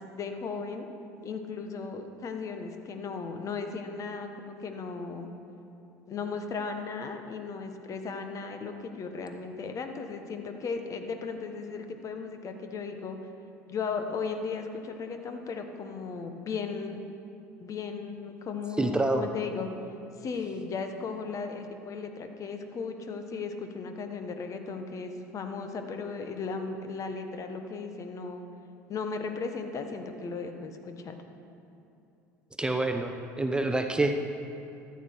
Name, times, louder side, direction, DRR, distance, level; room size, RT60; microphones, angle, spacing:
voice 1, 0.1-0.9 1.2-5.3 6.1-13.2 13.7-17.0 17.6-19.7 20.2-28.4 28.9-31.2, left 4 dB, 40° left, 6 dB, 1.1 m, -36 dB
voice 2, 18.8-19.3 32.6-34.2, right 2 dB, 10° right, 5 dB, 0.7 m, -27 dB
13.5 x 8.3 x 4.6 m, 2.7 s
hypercardioid pair, 70°, 8 cm